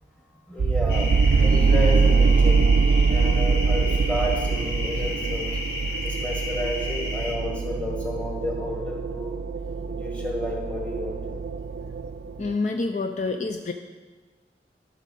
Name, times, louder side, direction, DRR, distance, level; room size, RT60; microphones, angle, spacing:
voice 1, 0.5-2.7 3.1-5.5 6.0-9.4 9.9-11.4, left 1 dB, 5° left, -1 dB, 1.5 m, -31 dB
sound 1, 0.6-12.5, right 4 dB, 60° right, 0.3 m, -23 dB
sound 2, 0.9-7.3, left 2 dB, 75° left, 1.6 m, -33 dB
voice 2, 12.4-13.7, left 3 dB, 40° left, 5 dB, 0.4 m, -27 dB
13.5 x 6.2 x 4.2 m, 1.4 s
head